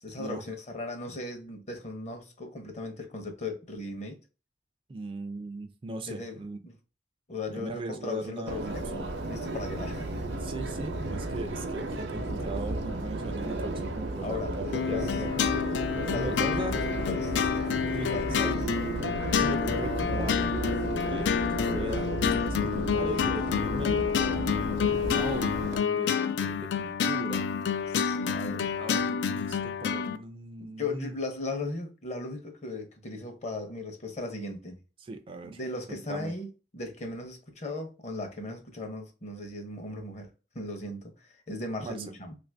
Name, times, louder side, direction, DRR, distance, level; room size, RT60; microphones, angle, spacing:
voice 1, 0.0-4.2 6.1-6.4 6.6-6.7 7.3-10.2 14.2-15.1 16.0-17.7 18.1-18.6 27.9-28.7 30.8-34.8 35.4-36.5 36.7-40.3 40.5-42.3, left 2 dB, 40° left, 0.7 m, -37 dB
voice 2, 4.9-6.6 7.5-9.0 10.4-15.3 16.1-16.7 17.9-18.1 18.4-18.5 19.2-22.1 22.5-24.1 24.8-27.5 28.6-31.2 35.0-35.6 35.9-36.3 41.8-42.2, right 2 dB, 30° right, 0.3 m, -39 dB
Subway metro underground, 8.5-25.8, right 2 dB, 75° right, 0.6 m, -33 dB
sound 1, 14.7-30.2, left 7 dB, 85° left, 0.3 m, -29 dB
2.9 x 2.5 x 3.3 m
head